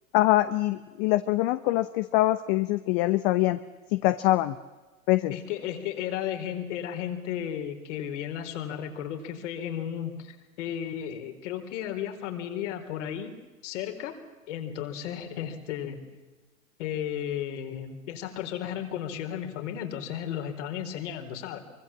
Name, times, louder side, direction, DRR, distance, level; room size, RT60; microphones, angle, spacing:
voice 1, 0.1-3.6 3.9-4.5 5.1-5.3, left 17 dB, 40° left, 11 dB, 1.0 m, -24 dB
voice 2, 5.3-13.4 13.6-14.2 14.5-16.2 16.8-21.6, left 9 dB, 60° left, 5 dB, 4.2 m, -34 dB
25.0 x 24.0 x 7.4 m, 1.2 s
hypercardioid pair, 105°, 41 cm